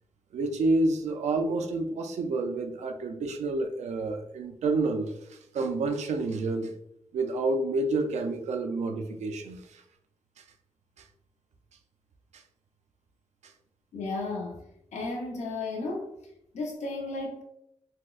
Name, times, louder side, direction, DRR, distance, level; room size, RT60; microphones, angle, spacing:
voice 1, 0.3-6.7 7.1-9.8 10.4-10.5 11.0-11.1 12.3-12.4 13.4-13.5, right 2 dB, 85° right, 6 dB, 0.4 m, -29 dB
voice 2, 13.9-14.6 14.9-16.1 16.5-17.4, left 3 dB, 85° left, 1 dB, 0.7 m, -33 dB
4.2 x 2.1 x 2.3 m, 0.78 s
wide cardioid pair, 105°, 11 cm